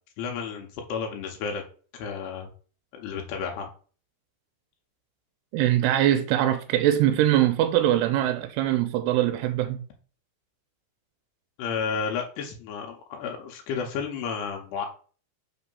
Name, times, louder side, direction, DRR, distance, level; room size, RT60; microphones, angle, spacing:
voice 1, 0.2-1.6 1.9-2.5 2.9-3.7 11.6-14.9, left 6 dB, 80° left, 2.8 m, -32 dB
voice 2, 5.5-9.8, right 12 dB, 85° right, 2.4 m, -22 dB
6.0 x 3.4 x 5.4 m
omnidirectional pair, 4.9 m